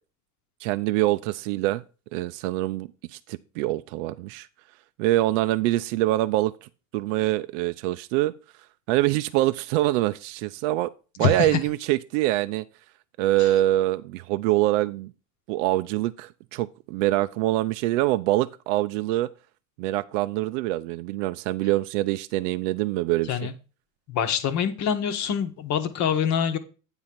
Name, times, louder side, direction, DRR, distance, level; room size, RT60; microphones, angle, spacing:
voice 1, 0.6-1.8 2.1-4.5 5.0-8.3 8.9-10.9 11.2-12.6 13.2-15.1 15.5-19.3 19.8-23.5, right 16 dB, 65° right, 0.5 m, -25 dB
voice 2, 11.2-11.6 13.4-13.5 23.3-23.5 24.1-26.6, left 7 dB, 45° left, 1.1 m, -25 dB
8.9 x 3.8 x 5.8 m
hypercardioid pair, 90°, 41 cm